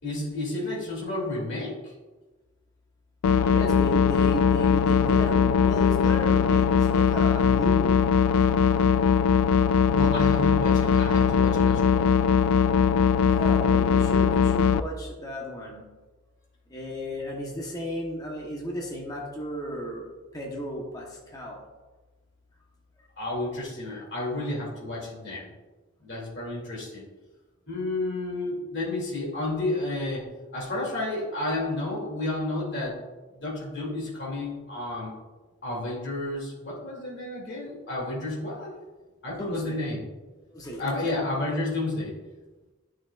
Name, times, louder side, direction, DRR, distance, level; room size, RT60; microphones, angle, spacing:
voice 1, 0.0-1.9 9.9-12.1 23.2-25.5 26.0-27.0 27.7-30.2 30.5-33.0 33.4-35.1 35.6-38.7 39.2-40.0 40.8-42.1, left 2 dB, 55° left, -4 dB, 2.6 m, -31 dB
sound 1, 3.2-14.8, left 6 dB, 85° left, 0.3 m, -21 dB
voice 2, 3.3-8.1 13.3-15.9 16.7-21.6 39.4-39.8 40.5-41.2, equal, 15° left, -2 dB, 1.0 m, -34 dB
10.5 x 6.3 x 2.4 m, 1.2 s
head